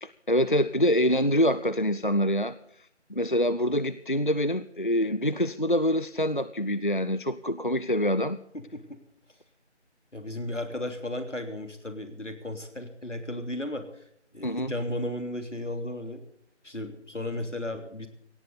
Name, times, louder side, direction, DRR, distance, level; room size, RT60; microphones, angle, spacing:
voice 1, 0.0-2.5 3.1-8.4 14.4-14.7, equal, 45° left, 14 dB, 0.6 m, -25 dB
voice 2, 8.5-9.0 10.1-14.0 14.3-16.2 16.6-18.1, left 1 dB, 80° left, 6 dB, 3.3 m, -34 dB
17.5 x 16.0 x 4.0 m, 0.70 s
figure-of-eight pair, 170°, 36 cm